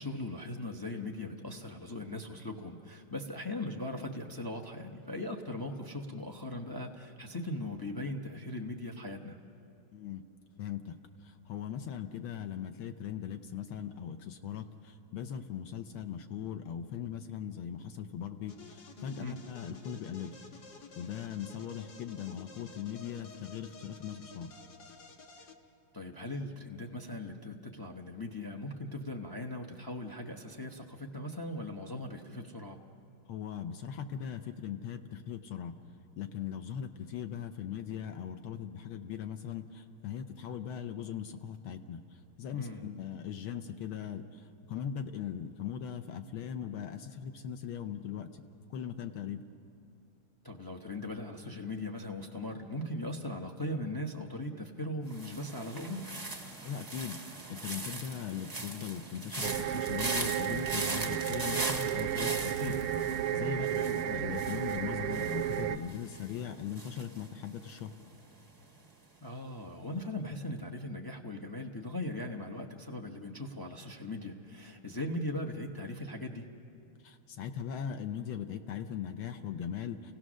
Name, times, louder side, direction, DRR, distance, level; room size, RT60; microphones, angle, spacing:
voice 1, 0.0-9.4 19.2-19.4 25.9-32.8 42.5-42.9 50.4-56.1 62.6-62.8 63.7-64.0 69.2-76.5, left 1 dB, 35° left, 1 dB, 0.3 m, -39 dB
voice 2, 9.9-10.2 10.6-10.9 11.2-20.3 21.0-24.5 33.3-35.7 36.2-42.0 42.4-48.3 48.7-49.4 56.6-57.2 57.5-62.8 63.3-63.7 64.0-67.9 77.0-80.1, left 8 dB, 75° left, 7 dB, 1.6 m, -39 dB
sound 1, 18.5-25.5, left 4 dB, 55° left, 1.8 m, -52 dB
sound 2, 55.1-68.1 68.4-68.9, right 2 dB, 20° right, 0.6 m, -40 dB
sound 3, 59.4-65.8, right 11 dB, 85° right, 1.6 m, -33 dB
29.5 x 17.5 x 6.3 m, 2.6 s
omnidirectional pair, 2.4 m